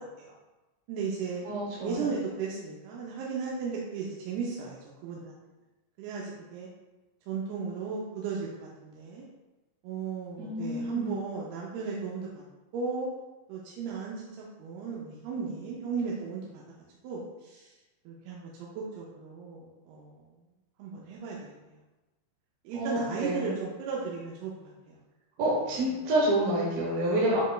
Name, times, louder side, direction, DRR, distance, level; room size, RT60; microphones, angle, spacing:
voice 1, 0.9-1.4 1.8-5.4 6.0-6.7 7.3-9.3 9.8-12.4 12.7-13.1 13.5-16.6 17.0-17.7 18.1-20.3 20.8-21.8 22.6-25.0, right 5 dB, 90° right, -4 dB, 2.6 m, -36 dB
voice 2, 1.5-2.0 10.4-11.2 22.7-23.6 25.4-27.4, right 1 dB, 70° right, -5 dB, 2.6 m, -28 dB
7.2 x 3.2 x 2.3 m, 1.1 s
omnidirectional pair, 4.5 m